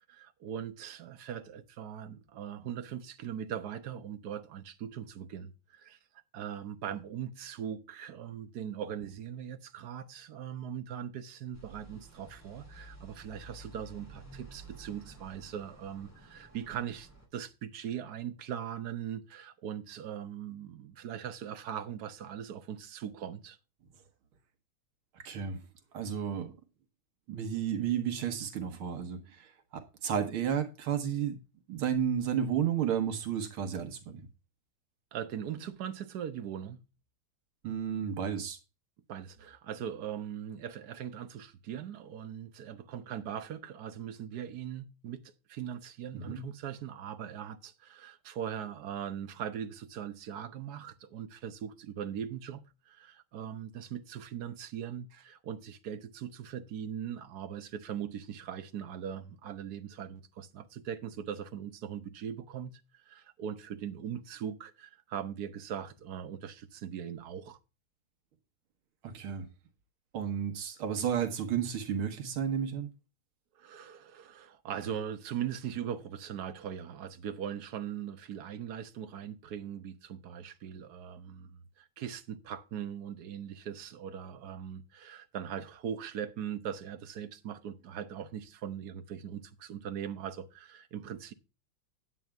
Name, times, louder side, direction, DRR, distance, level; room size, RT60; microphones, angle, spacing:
voice 1, 0.0-6.0 6.3-23.6 35.1-36.8 39.1-45.2 45.5-67.6 73.6-91.3, right 9 dB, 55° right, 1.4 m, -40 dB
sound 1, 11.5-17.3, right 2 dB, 5° left, 2.3 m, -52 dB
voice 2, 25.1-25.6 25.9-26.5 27.3-31.4 31.7-34.3 37.6-38.6 46.1-46.4 69.0-69.5 70.1-72.9, right 8 dB, 85° right, 2.1 m, -32 dB
9.4 x 8.8 x 3.4 m
omnidirectional pair, 2.3 m